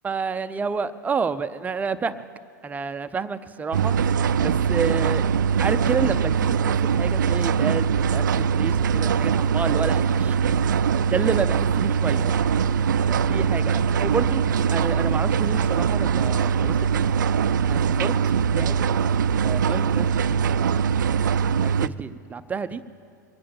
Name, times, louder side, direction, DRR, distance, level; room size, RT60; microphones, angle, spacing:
voice 1, 0.0-2.2 2.6-3.9 4.2-5.2 5.6-10.4 11.1-12.4 13.1-14.4 14.7-17.1 17.7-18.1 18.5-19.1 19.4-20.6 21.6-22.8, right 5 dB, 15° right, 11 dB, 0.6 m, -29 dB
sound 1, 3.7-21.9, right 7 dB, 75° right, 0.4 m, -22 dB
23.0 x 8.6 x 7.1 m, 2.4 s
hypercardioid pair, 100°, 10 cm